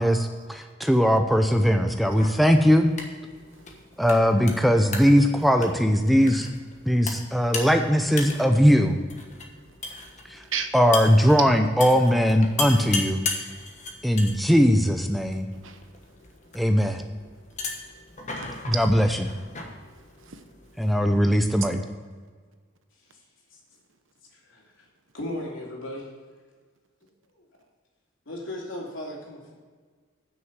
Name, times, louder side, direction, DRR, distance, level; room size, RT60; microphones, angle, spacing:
voice 1, 0.0-2.9 4.0-6.5 6.9-9.0 10.3-10.4 10.7-13.2 14.0-15.5 16.5-17.0 18.8-19.1 20.8-21.8, equal, ahead, 5 dB, 0.5 m, -20 dB
sound 1, 2.1-20.9, left 3 dB, 35° left, 1.2 m, -37 dB
voice 2, 3.5-3.8 9.3-9.7 10.0-10.1 10.4-10.7 11.4-11.5 12.8-12.9 13.6-14.2 15.5-15.8 17.7-17.8 18.7-18.9 19.8-20.4, right 8 dB, 80° right, 7 dB, 1.1 m, -36 dB
voice 3, 24.3-24.9 25.1-26.1 27.3-27.4 28.3-29.5, left 1 dB, 80° left, -2 dB, 2.9 m, -36 dB
9.4 x 6.3 x 7.3 m, 1.5 s
head